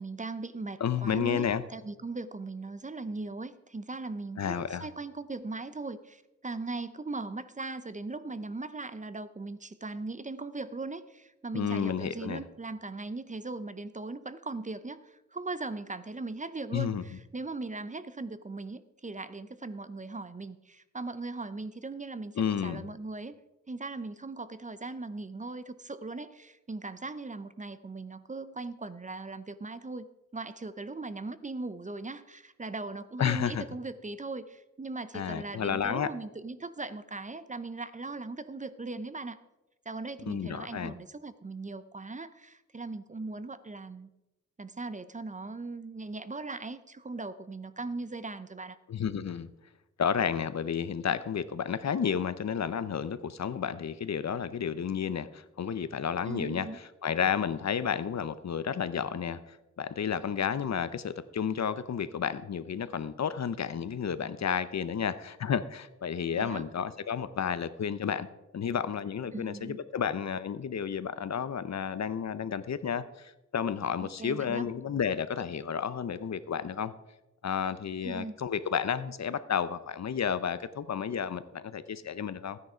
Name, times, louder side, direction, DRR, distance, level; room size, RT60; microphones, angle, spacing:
voice 1, 0.0-23.4 23.7-30.1 30.3-39.4 39.9-44.1 44.6-48.8 56.3-56.8 66.3-66.6 69.3-69.8 74.0-74.7 78.0-78.4, right 3 dB, 25° right, 13 dB, 0.6 m, -39 dB
voice 2, 0.8-1.6 4.4-4.8 11.5-12.4 16.7-17.0 22.4-22.8 33.2-33.6 35.1-36.1 40.2-40.9 48.9-49.5 50.0-68.3 68.5-76.9 77.4-82.6, left 7 dB, 60° left, 14 dB, 0.7 m, -31 dB
13.0 x 9.7 x 4.9 m, 0.97 s
wide cardioid pair, 105°, 30 cm